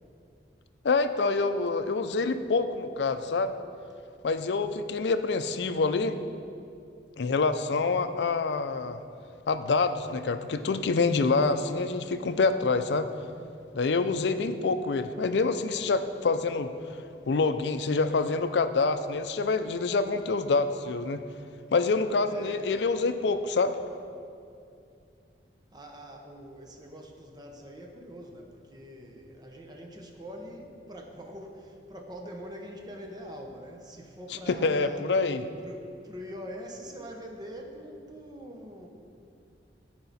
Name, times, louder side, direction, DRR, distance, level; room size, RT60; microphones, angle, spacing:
voice 1, 0.8-3.5 4.2-6.2 7.2-9.0 9.5-13.1 13.7-16.7 17.3-21.2 21.7-23.7 34.5-35.4, left 4 dB, 70° left, 10 dB, 0.5 m, -26 dB
voice 2, 22.1-22.7 25.7-35.0 35.6-38.9, equal, 25° right, 1 dB, 0.9 m, -43 dB
14.5 x 4.8 x 4.1 m, 2.5 s
head